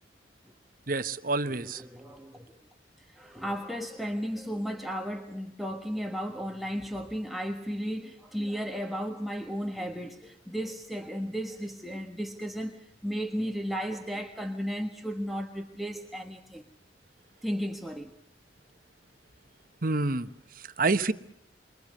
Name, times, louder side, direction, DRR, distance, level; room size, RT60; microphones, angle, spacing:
voice 1, 0.9-1.8 19.8-20.3 20.5-21.1, right 3 dB, 55° right, 1.2 m, -28 dB
voice 2, 1.4-2.6 3.0-16.6 17.4-18.1, equal, ahead, 1.4 m, -34 dB
28.5 x 24.0 x 6.6 m
head